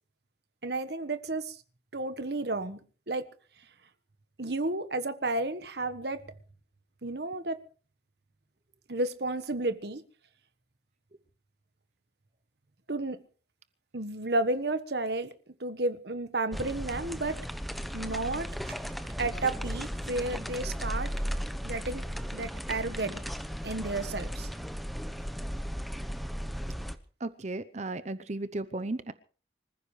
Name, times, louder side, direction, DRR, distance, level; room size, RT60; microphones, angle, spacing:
voice 1, 0.6-1.6 1.9-2.8 3.1-3.3 4.4-6.3 7.0-7.6 8.9-10.0 12.9-13.2 13.9-15.3 15.6-17.4 17.9-18.7 19.2-21.1 21.6-22.0 22.3-23.2 23.6-24.5, right 2 dB, 55° right, 1.3 m, -32 dB
sound 1, 16.5-27.0, equal, ahead, 0.8 m, -36 dB
voice 2, 27.2-29.1, right 2 dB, 35° right, 0.7 m, -35 dB
25.5 x 15.0 x 3.3 m
head